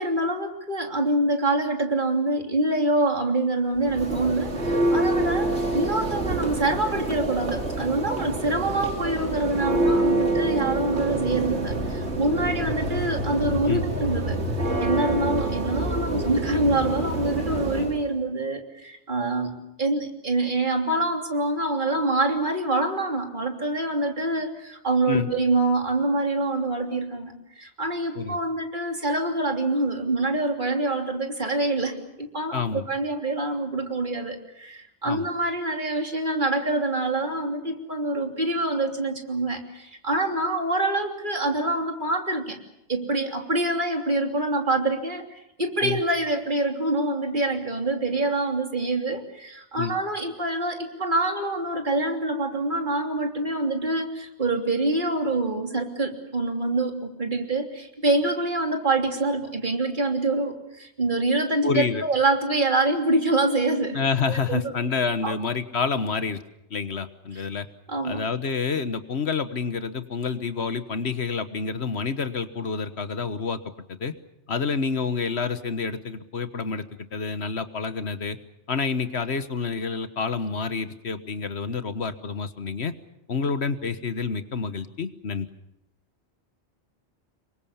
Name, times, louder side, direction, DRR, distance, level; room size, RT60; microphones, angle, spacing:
voice 1, 0.0-42.6 42.9-64.0 64.3-64.6 65.2-65.4 67.9-68.2, right 2 dB, 45° right, 3 dB, 3.3 m, -25 dB
Church bell, 3.8-18.0, right 2 dB, 75° right, 3.1 m, -27 dB
voice 2, 32.5-32.9 35.0-35.3 45.8-46.0 49.8-50.0 61.6-62.0 63.9-66.4 66.7-67.7 68.0-73.6 73.9-74.1 74.5-78.4 78.7-82.9 83.3-85.5, left 5 dB, 70° left, 11 dB, 1.5 m, -28 dB
26.5 x 23.5 x 7.1 m, 0.83 s
omnidirectional pair, 1.2 m